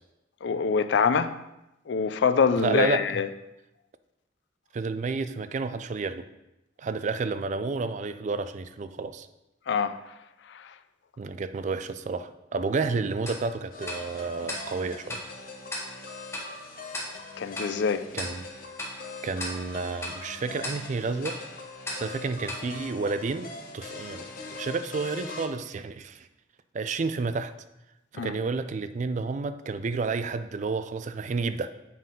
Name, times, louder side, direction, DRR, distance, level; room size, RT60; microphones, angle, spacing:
voice 1, 0.4-1.4 1.9-3.3 9.7-10.1 10.5-10.7 17.4-18.1 28.1-28.3, left 6 dB, 65° left, 0.4 m, -25 dB
voice 2, 2.6-3.2 4.7-6.2 6.8-9.3 11.2-15.2 18.1-18.5 19.2-21.4 21.9-26.3 26.7-27.5 28.1-31.7, right 4 dB, 40° right, 0.3 m, -30 dB
Tick-tock, 13.3-23.7, left 1 dB, 15° left, 1.1 m, -40 dB
sound 1, 13.7-25.5, left 3 dB, 50° left, 0.8 m, -42 dB
7.6 x 5.5 x 3.7 m
head